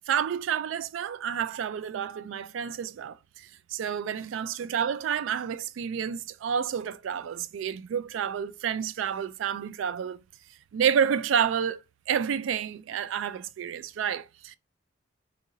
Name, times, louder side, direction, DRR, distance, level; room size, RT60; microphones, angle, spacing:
voice 1, 0.1-10.2 10.7-11.8 12.1-14.6, right 8 dB, 85° right, 0.3 m, -29 dB
2.9 x 2.5 x 3.8 m
head